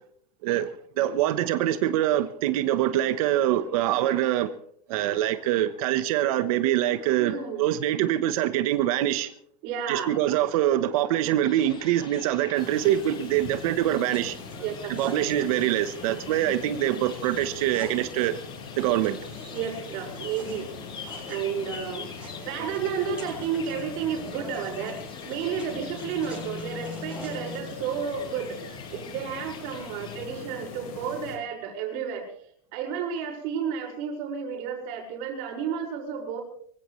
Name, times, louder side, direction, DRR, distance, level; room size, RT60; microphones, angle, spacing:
voice 1, 1.0-4.5 4.9-9.3 9.9-14.4 14.9-18.4 18.8-19.2, right 12 dB, 75° right, 1.2 m, -24 dB
voice 2, 7.2-7.6 9.6-10.2 14.6-15.2 19.5-20.7 21.3-22.1 22.4-32.3 32.7-36.4, right 7 dB, 60° right, 5.8 m, -32 dB
sound 1, 11.4-30.3, left 5 dB, 25° left, 3.7 m, -46 dB
sound 2, 12.5-31.4, left 5 dB, 85° left, 4.9 m, -42 dB
sound 3, 14.1-27.6, left 2 dB, 5° right, 7.4 m, -45 dB
24.0 x 15.5 x 3.2 m
supercardioid pair, 140°, 18 cm